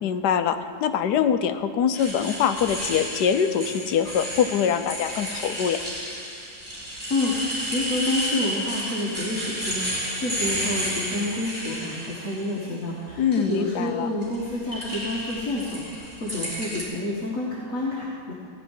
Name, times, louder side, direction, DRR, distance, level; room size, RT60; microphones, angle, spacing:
voice 1, 0.0-5.8 13.2-14.1, left 8 dB, 90° left, 9 dB, 1.3 m, -24 dB
sound 1, 1.9-12.5 13.1-13.7 14.2-16.8, equal, 25° right, 4.2 m, -32 dB
voice 2, 6.8-18.3, left 2 dB, 55° left, -6 dB, 2.0 m, -29 dB
16.5 x 5.6 x 9.8 m, 2.5 s
omnidirectional pair, 1.7 m